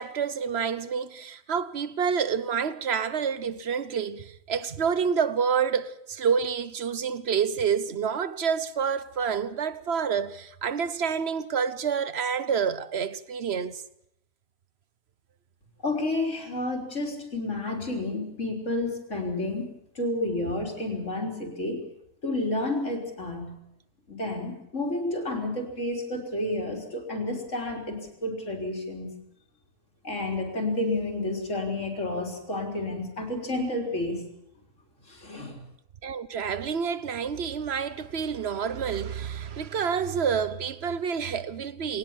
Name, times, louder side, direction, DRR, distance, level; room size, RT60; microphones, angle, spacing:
voice 1, 0.0-13.8 36.0-42.0, right 6 dB, 50° right, 1.2 m, -28 dB
voice 2, 15.8-19.6 19.9-21.8 22.2-23.6 24.1-29.1 30.0-34.3 35.1-35.6, left 2 dB, 55° left, 4.3 m, -30 dB
21.0 x 19.0 x 7.4 m
omnidirectional pair, 1.6 m